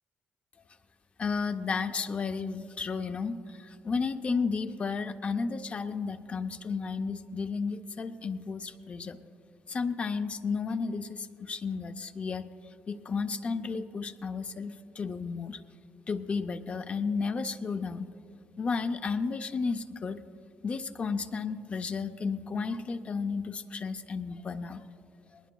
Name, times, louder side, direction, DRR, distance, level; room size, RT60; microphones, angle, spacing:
voice 1, 1.2-9.2 9.7-15.6 16.1-18.1 18.6-20.2 20.6-24.9 25.3-25.4, left 5 dB, 30° left, 9 dB, 0.5 m, -33 dB
20.0 x 19.5 x 2.2 m, 2.5 s
cardioid pair, 160°, 4 cm